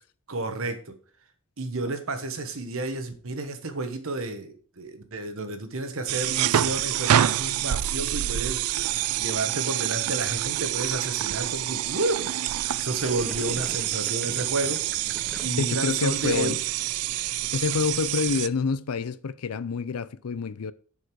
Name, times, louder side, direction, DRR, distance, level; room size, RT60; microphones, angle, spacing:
voice 1, 0.3-1.0 1.6-8.6 9.2-14.8 15.4-16.6, right 2 dB, 65° right, 1.3 m, -31 dB
sound 1, 6.1-18.5, right 12 dB, 85° right, 0.4 m, -27 dB
Gurgling, 13.0-16.8 17.1-17.5, equal, ahead, 0.7 m, -43 dB
voice 2, 15.6-16.6 17.5-20.7, left 5 dB, 80° left, 0.5 m, -27 dB
7.2 x 6.5 x 4.7 m
head